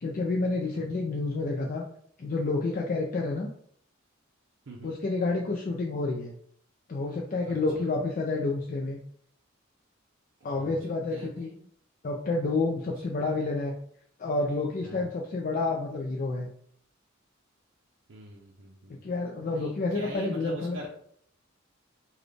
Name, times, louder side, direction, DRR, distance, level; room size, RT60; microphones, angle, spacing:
voice 1, 0.0-1.8 2.2-3.5 4.8-6.3 6.9-9.0 10.4-11.5 12.0-13.7 14.2-16.5 19.0-20.8, left 3 dB, 45° left, 0 dB, 0.4 m, -29 dB
voice 2, 7.5-7.9 10.4-11.6 12.8-12.9 13.3-13.4 14.8-15.1 18.1-19.1 19.5-20.9, right 1 dB, 65° right, -3 dB, 0.6 m, -45 dB
4.0 x 2.2 x 3.2 m, 0.65 s
head